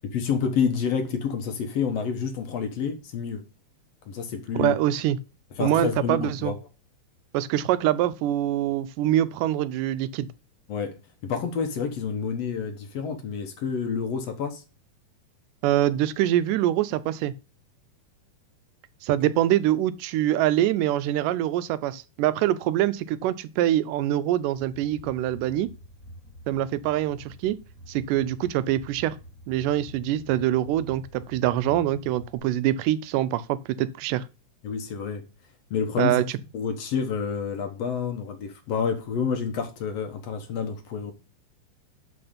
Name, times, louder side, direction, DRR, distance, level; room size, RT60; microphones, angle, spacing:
voice 1, 0.1-3.4 4.1-4.8 5.6-6.6 10.7-11.0 11.2-14.6 34.6-35.2 35.7-36.2 36.5-41.1, left 6 dB, 65° left, 1.9 m, -28 dB
voice 2, 4.6-5.2 5.6-6.5 7.3-10.3 15.6-17.3 19.0-25.7 26.5-27.6 27.9-29.2 29.5-34.2 36.0-36.2, right 13 dB, 90° right, 2.2 m, -24 dB
sound 1, 24.6-32.4, equal, 35° left, 1.6 m, -47 dB
11.5 x 4.3 x 5.1 m
omnidirectional pair, 3.7 m